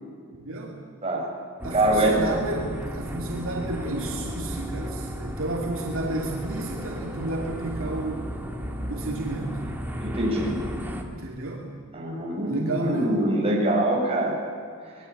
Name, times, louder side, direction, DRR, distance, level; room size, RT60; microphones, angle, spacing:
voice 1, 0.3-0.8 1.6-8.3 8.9-9.6 11.1-11.7 12.5-13.2, right 2 dB, 65° right, -1 dB, 3.0 m, -32 dB
sound 1, 1.6-11.0, equal, 10° right, 2.4 m, -34 dB
voice 2, 1.7-2.2 10.0-10.6 11.9-14.4, right 1 dB, 25° right, -3 dB, 7.7 m, -24 dB
26.0 x 21.0 x 8.7 m, 2.3 s
head